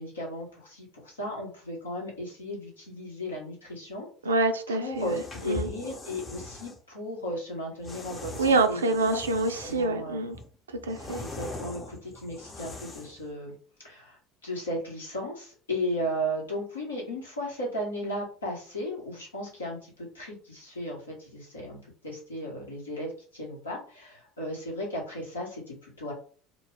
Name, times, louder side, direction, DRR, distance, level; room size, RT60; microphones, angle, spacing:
voice 1, 0.0-4.1 4.7-9.2 9.6-10.3 11.2-13.5 13.8-26.1, equal, 85° left, -2 dB, 1.0 m, -35 dB
voice 2, 4.3-5.1 5.5-5.7 8.4-10.4 10.9-11.2, right 3 dB, 80° right, 8 dB, 0.3 m, -26 dB
sound 1, 4.9-6.8 7.8-9.9 10.3-13.2, left 2 dB, 30° left, 0.7 m, -41 dB
2.2 x 2.0 x 3.3 m, 0.41 s
figure-of-eight pair, 70°, 0 cm